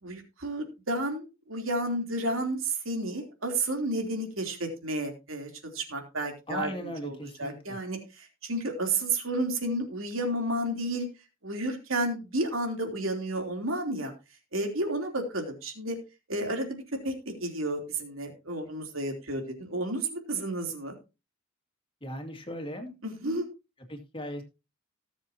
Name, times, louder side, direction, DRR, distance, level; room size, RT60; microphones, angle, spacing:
voice 1, 0.0-11.1 11.4-14.1 14.5-16.0 16.3-20.9 23.0-23.5, right 1 dB, 75° right, 3 dB, 3.4 m, -31 dB
voice 2, 6.5-7.8 22.0-22.9 23.9-24.4, equal, 25° left, 5 dB, 2.3 m, -37 dB
18.5 x 7.4 x 2.9 m, 0.29 s
head